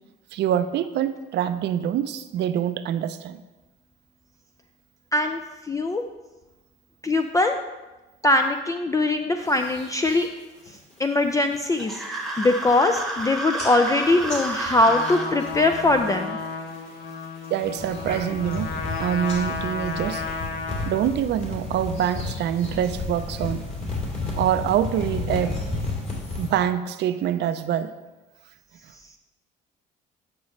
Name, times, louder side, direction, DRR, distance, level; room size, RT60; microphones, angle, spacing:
voice 1, 0.3-3.4 17.5-20.3 20.9-23.7 24.4-25.6 26.4-27.9, right 10 dB, 65° right, 11 dB, 0.5 m, -25 dB
voice 2, 5.7-6.0 7.0-7.6 8.2-10.3 11.0-12.0 12.4-16.4, left 2 dB, 15° left, 6 dB, 0.4 m, -21 dB
sound 1, 9.4-10.3 10.7-11.0 11.4-11.8 12.2-12.3 12.6-13.2 13.6-16.1 16.4-16.9 17.4-26.5, left 2 dB, 35° left, 2.7 m, -33 dB
sound 2, 11.8-15.3, right 2 dB, ahead, 1.3 m, -30 dB
Trumpet, 14.8-21.1, left 4 dB, 55° left, 1.0 m, -33 dB
8.7 x 6.1 x 3.1 m, 1.1 s
cardioid pair, 95°, 19 cm